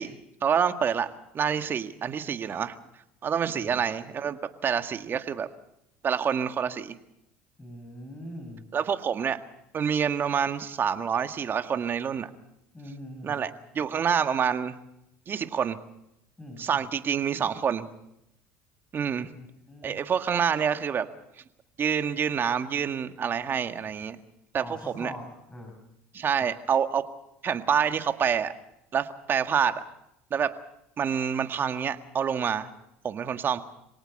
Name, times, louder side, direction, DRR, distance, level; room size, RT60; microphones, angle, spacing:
voice 1, 0.0-2.8 3.2-5.5 6.0-7.0 8.7-9.4 9.7-12.3 13.2-14.7 15.3-15.8 16.6-17.9 18.9-19.3 19.8-21.1 21.8-24.2 24.5-24.6 24.9-25.1 26.1-27.1 27.4-28.5 28.9-29.8 30.3-30.6 31.0-32.7 33.0-33.6, right 7 dB, 40° right, 9 dB, 1.8 m, -27 dB
voice 2, 3.5-3.8 7.6-8.7 12.7-13.4 16.4-16.8 19.3-19.9 24.6-25.8 26.4-26.5, left 1 dB, 15° left, 2 dB, 6.1 m, -42 dB
25.5 x 18.0 x 6.7 m, 0.83 s
supercardioid pair, 85°, 6 cm